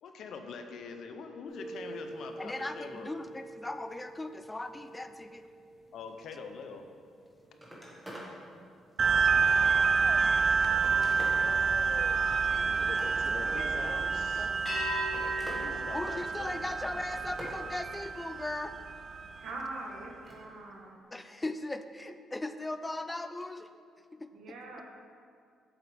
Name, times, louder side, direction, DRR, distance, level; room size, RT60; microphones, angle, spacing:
voice 1, 0.0-3.1 5.9-6.9 12.6-14.5 15.5-16.7, left 5 dB, 70° left, 6 dB, 0.7 m, -44 dB
sound 1, 1.5-7.0 7.5-7.8 10.8-12.9 14.7-17.2, equal, 35° left, 2.0 m, -42 dB
voice 2, 2.4-5.4 12.5-14.1 14.4-14.6 15.9-18.8 21.1-23.7, left 2 dB, 15° left, 9 dB, 0.4 m, -39 dB
Telephone, 7.1-7.2 7.5-8.3 8.8-9.9 10.5-11.5 12.7-13.5 14.5-15.7 16.0-16.5 16.9-17.6 20.1-20.4 21.8-21.9, equal, 10° right, 1.8 m, -46 dB
sound 2, 9.0-19.9, right 5 dB, 50° right, 0.4 m, -28 dB
voice 3, 19.4-21.0 24.3-24.8, right 2 dB, 75° right, 0 dB, 1.3 m, -43 dB
7.7 x 7.2 x 3.5 m, 2.2 s
cardioid pair, 90°, 0 cm